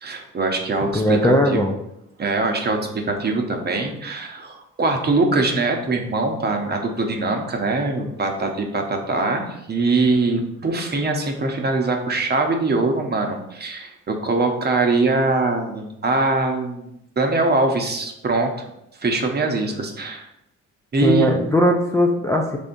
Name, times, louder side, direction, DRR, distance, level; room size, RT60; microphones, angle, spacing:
voice 1, 0.0-1.6 2.2-16.9 17.2-18.5 19.0-20.3 20.9-21.3, right 3 dB, 35° right, 3 dB, 0.8 m, -22 dB
voice 2, 0.8-1.7 21.0-22.6, equal, 10° left, 0 dB, 0.4 m, -19 dB
5.3 x 3.4 x 2.5 m, 0.83 s
cardioid pair, 90°, 30 cm